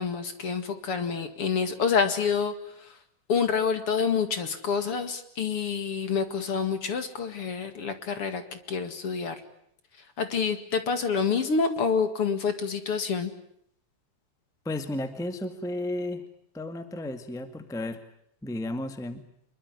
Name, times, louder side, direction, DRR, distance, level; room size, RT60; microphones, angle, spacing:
voice 1, 0.0-2.5 3.3-8.4 8.7-9.3 10.2-13.3, left 6 dB, 50° left, 9 dB, 2.8 m, -27 dB
voice 2, 14.6-16.2 16.5-18.0 18.4-19.2, left 1 dB, ahead, 9 dB, 1.6 m, -33 dB
26.5 x 23.0 x 9.8 m, 0.69 s
omnidirectional pair, 3.4 m